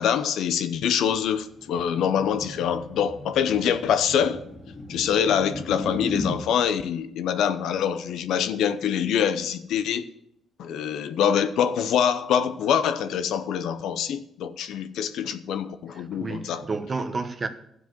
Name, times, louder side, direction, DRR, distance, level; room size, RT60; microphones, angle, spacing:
voice 1, 0.0-4.4 4.9-10.1 10.6-16.7, left 8 dB, 80° left, 0.6 m, -25 dB
sound 1, 1.1-6.4, left 2 dB, 25° left, 2.2 m, -36 dB
voice 2, 15.9-17.5, right 4 dB, 30° right, 1.1 m, -31 dB
13.0 x 4.8 x 7.8 m
cardioid pair, 90°, 0 cm